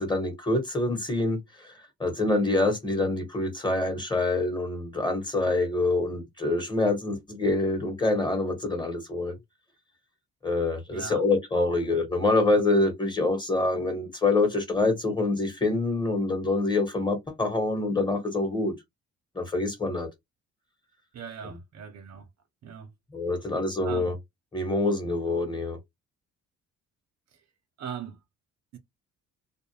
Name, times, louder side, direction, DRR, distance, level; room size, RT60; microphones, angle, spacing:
voice 1, 0.0-9.4 10.4-18.7 19.3-20.1 21.4-21.6 23.1-24.2 24.5-25.8, left 2 dB, 15° left, 1.2 m, -26 dB
voice 2, 10.9-11.2 21.1-22.2 22.6-22.9 23.8-24.1 27.8-28.2 28.7-28.8, right 8 dB, 60° right, 0.7 m, -39 dB
2.4 x 2.1 x 2.9 m
cardioid pair, 90°, 30 cm